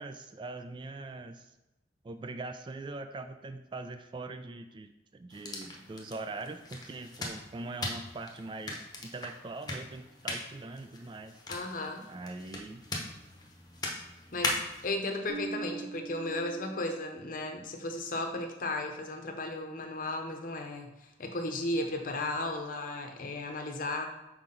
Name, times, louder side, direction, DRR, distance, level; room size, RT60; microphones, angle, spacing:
voice 1, 0.0-1.5 2.0-11.4 12.1-12.8, right 3 dB, 25° right, 8 dB, 0.3 m, -42 dB
sound 1, 5.3-14.9, left 2 dB, 20° left, 0.9 m, -40 dB
voice 2, 11.5-12.1 13.8-13.9 14.3-20.9 21.2-24.1, left 2 dB, 50° left, 4 dB, 0.7 m, -35 dB
Bass guitar, 15.3-17.7, right 4 dB, 70° right, 0.7 m, -42 dB
5.8 x 4.7 x 3.8 m, 0.96 s
head